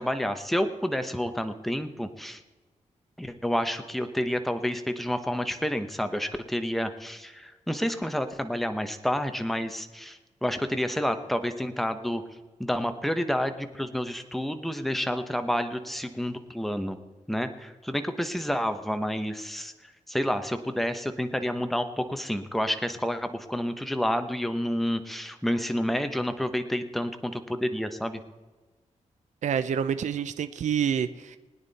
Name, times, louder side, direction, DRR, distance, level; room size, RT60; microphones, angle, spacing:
voice 1, 0.0-2.4 3.2-12.2 12.6-17.0 17.3-19.7 20.1-28.2, equal, ahead, 8 dB, 1.0 m, -29 dB
voice 2, 29.4-31.4, right 8 dB, 70° right, 12 dB, 0.6 m, -27 dB
21.0 x 9.7 x 4.1 m, 1.3 s
wide cardioid pair, 115°, 13 cm